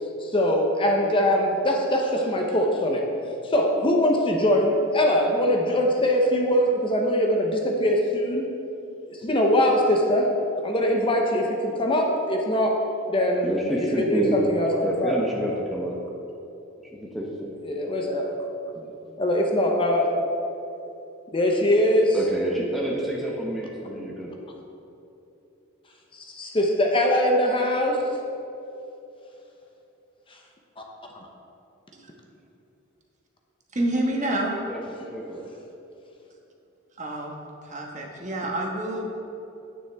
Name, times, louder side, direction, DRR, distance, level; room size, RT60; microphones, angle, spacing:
voice 1, 0.2-3.1 3.4-8.5 9.1-10.3 10.6-12.8 13.1-15.1 17.6-18.3 19.2-20.1 21.3-22.2 26.1-28.2 30.8-30.9, left 1 dB, 25° left, 1 dB, 0.8 m, -22 dB
voice 2, 13.4-14.4 14.8-16.0 16.9-17.5 18.7-18.9 22.1-24.3 34.7-34.8 35.1-35.4, equal, ahead, -4 dB, 0.8 m, -29 dB
voice 3, 33.7-34.6 37.0-37.4 37.6-39.1, right 1 dB, 35° right, 0 dB, 1.3 m, -28 dB
9.8 x 9.3 x 3.5 m, 2.9 s
head